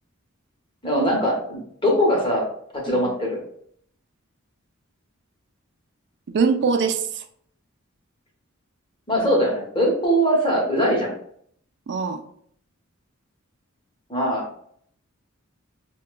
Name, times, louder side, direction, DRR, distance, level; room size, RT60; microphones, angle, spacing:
voice 1, 0.8-2.4 2.7-3.4 9.1-11.1 14.1-14.4, equal, 25° left, -2 dB, 1.0 m, -21 dB
voice 2, 6.3-7.2 11.9-12.2, right 5 dB, 55° right, 7 dB, 0.4 m, -23 dB
5.8 x 2.2 x 2.2 m, 0.66 s
head